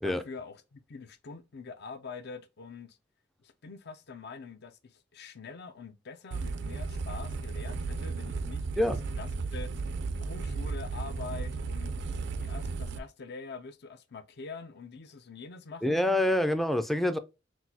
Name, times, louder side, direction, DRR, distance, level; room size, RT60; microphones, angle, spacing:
voice 1, 0.0-3.0 3.4-8.8 9.1-9.7 10.2-11.9 12.4-16.0, left 4 dB, 55° left, 0.5 m, -45 dB
sound 1, 6.3-13.0, right 4 dB, 60° right, 0.4 m, -34 dB
voice 2, 15.8-17.2, left 1 dB, ahead, 0.4 m, -26 dB
6.1 x 2.3 x 2.7 m
head